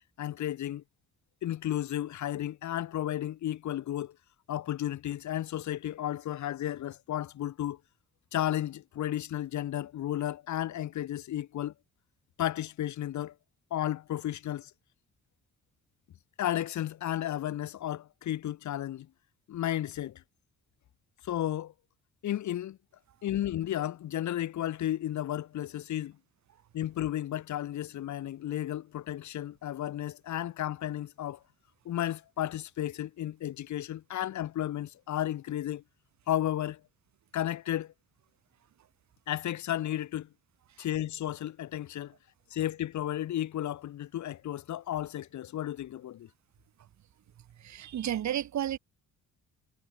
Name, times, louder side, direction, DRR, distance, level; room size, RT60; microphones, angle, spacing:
voice 1, 0.2-0.8 1.4-4.2 4.5-7.8 8.3-11.7 12.4-13.3 13.7-14.7 16.4-19.1 19.5-20.2 21.2-21.7 22.2-22.8 23.2-26.2 26.7-31.4 31.9-35.8 36.3-36.8 37.3-37.9 39.3-40.3 40.8-42.1 42.5-46.3, left 12 dB, 70° left, 2.0 m, -33 dB
voice 2, 47.4-48.8, right 11 dB, 65° right, 3.2 m, -33 dB
cardioid pair, 90°, 30 cm